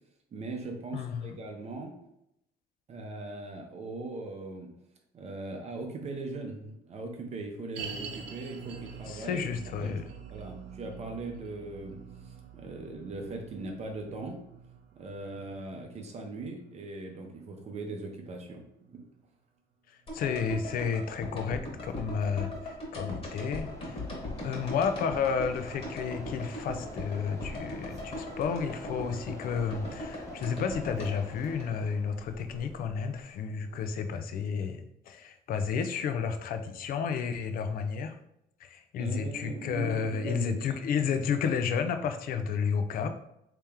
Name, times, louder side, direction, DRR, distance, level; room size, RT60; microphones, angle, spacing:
voice 1, 0.3-1.9 2.9-4.7 5.1-9.5 9.8-9.9 10.3-14.4 15.0-19.0 39.0-40.7, right 3 dB, 40° right, 2 dB, 0.7 m, -39 dB
voice 2, 0.9-1.4 9.1-10.0 19.9-24.0 24.4-38.1 38.6-43.1, left 6 dB, 60° left, 8 dB, 0.5 m, -32 dB
sound 1, 7.8-19.0 19.3-19.4 20.0-20.1, right 6 dB, 85° right, 0.5 m, -46 dB
sound 2, 20.1-32.3 32.5-32.6, left 1 dB, 35° left, 1.3 m, -40 dB
Mechanisms, 21.8-34.2, left 1 dB, 20° left, 0.8 m, -48 dB
3.3 x 2.9 x 3.5 m, 0.80 s
cardioid pair, 110°, 17 cm